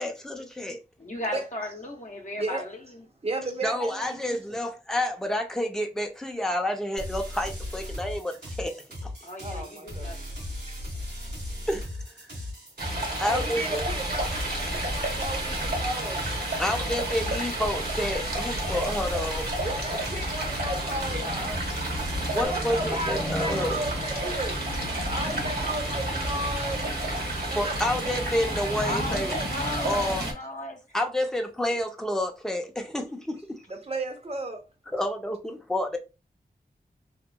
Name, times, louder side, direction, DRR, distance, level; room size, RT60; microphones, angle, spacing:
voice 1, 0.0-0.8 3.6-8.7 9.0-9.1 11.7-11.9 12.2-12.3 13.2-13.8 16.6-19.5 22.3-23.8 27.5-29.4 29.8-30.2 30.9-33.6 34.9-36.0, left 1 dB, 5° left, 0.6 m, -29 dB
voice 2, 1.0-3.0 9.2-10.2 28.8-30.8, left 1 dB, 50° left, 0.7 m, -36 dB
voice 3, 3.2-4.2 9.4-10.1 10.4-10.8 13.2-16.2 19.6-21.6 22.3-24.6 25.1-26.9 27.5-27.7 31.2-31.5 33.7-34.6, right 2 dB, 35° right, 0.6 m, -34 dB
sound 1, 7.0-22.5, left 1 dB, 85° right, 1.3 m, -37 dB
Stream, 12.8-30.3, right 1 dB, 65° right, 0.9 m, -31 dB
sound 2, 14.3-27.5, left 1 dB, 85° left, 0.5 m, -42 dB
2.8 x 2.4 x 2.2 m
wide cardioid pair, 75°, 17 cm